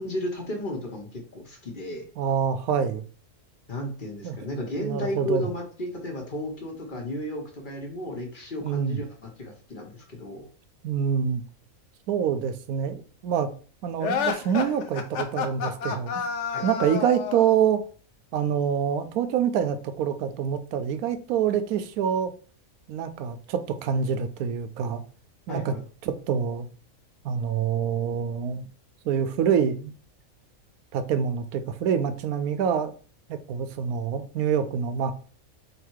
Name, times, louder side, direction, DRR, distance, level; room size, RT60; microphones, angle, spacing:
voice 1, 0.0-2.1 3.7-10.5 16.5-16.6 25.5-25.8, left 1 dB, 40° left, 1.0 m, -33 dB
voice 2, 2.2-3.0 4.2-4.4 4.8-5.5 8.6-9.0 10.8-11.4 12.1-13.5 13.8-16.2 16.6-17.8 18.3-22.3 22.9-25.0 25.5-25.7 26.0-26.7 27.2-28.6 29.0-29.9 30.9-32.9 33.3-35.1, right 7 dB, 90° right, 1.1 m, -26 dB
sound 1, 14.0-17.5, left 6 dB, 65° left, 0.9 m, -29 dB
3.9 x 2.9 x 4.5 m
omnidirectional pair, 1.5 m